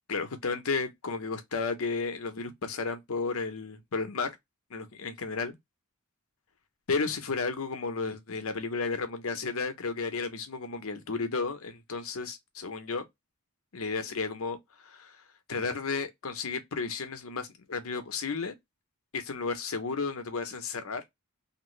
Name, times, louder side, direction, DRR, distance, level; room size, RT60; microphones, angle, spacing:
voice 1, 0.1-4.4 4.7-5.6 6.9-13.0 13.7-15.2 15.5-18.5 19.1-21.0, left 4 dB, 70° left, 0.7 m, -33 dB
2.9 x 2.5 x 3.0 m
head